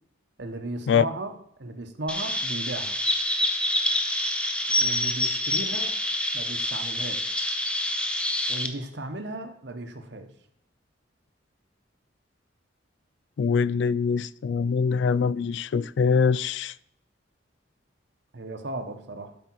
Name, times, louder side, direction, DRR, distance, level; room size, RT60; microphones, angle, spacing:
voice 1, 0.4-1.3 1.6-3.0 4.8-6.0 6.3-7.4 8.5-10.3 18.3-19.3, right 2 dB, 60° right, 1.0 m, -35 dB
Chirp tweet, 2.1-8.7, left 1 dB, 5° left, 0.6 m, -27 dB
voice 2, 13.4-16.7, left 6 dB, 65° left, 0.3 m, -23 dB
12.0 x 5.2 x 4.6 m
head